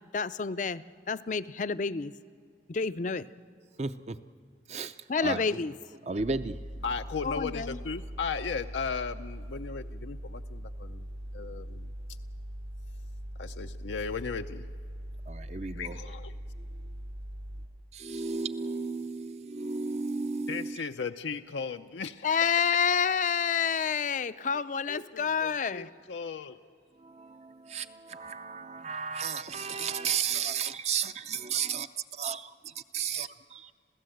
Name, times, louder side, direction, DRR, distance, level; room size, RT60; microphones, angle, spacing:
voice 1, 0.1-2.1 2.7-3.3 5.1-5.7 7.2-7.8 22.2-25.9, left 6 dB, 45° left, 0.5 m, -29 dB
voice 2, 3.8-4.2 4.7-5.0 5.2-5.6 6.0-6.6 15.3-16.0 17.9-20.8 27.0-31.9 32.1-33.7, right 5 dB, 35° right, 0.6 m, -34 dB
sound 1, 6.2-17.7, equal, 60° right, 2.3 m, -41 dB
voice 3, 6.8-11.1 11.3-11.9 13.4-14.7 15.7-16.3 20.5-22.3 22.9-23.1 23.5-23.7 24.9-26.6, left 5 dB, 85° left, 0.6 m, -36 dB
27.0 x 16.0 x 7.8 m
head